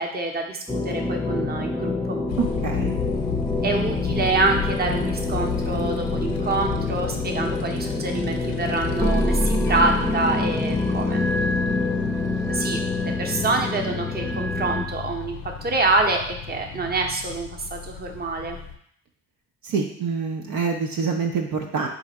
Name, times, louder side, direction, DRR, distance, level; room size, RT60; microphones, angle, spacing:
voice 1, 0.0-2.2 3.6-11.2 12.5-18.6, right 3 dB, 25° right, 2 dB, 0.8 m, -26 dB
sound 1, 0.7-14.8, left 2 dB, 5° left, 0.6 m, -26 dB
Motorcycle, 2.3-18.7, left 8 dB, 60° left, 0.6 m, -33 dB
voice 2, 2.4-3.0 19.6-21.9, right 5 dB, 60° right, 1 dB, 0.7 m, -26 dB
4.0 x 2.5 x 4.1 m, 0.66 s
hypercardioid pair, 40°, 39 cm